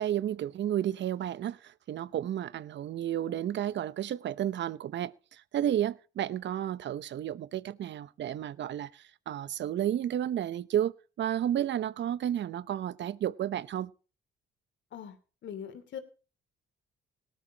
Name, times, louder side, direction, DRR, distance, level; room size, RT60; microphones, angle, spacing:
voice 1, 0.0-13.9, right 11 dB, 65° right, 0.9 m, -32 dB
voice 2, 15.4-16.0, left 8 dB, 70° left, 2.8 m, -41 dB
18.5 x 13.0 x 2.9 m
cardioid pair, 90°, 20 cm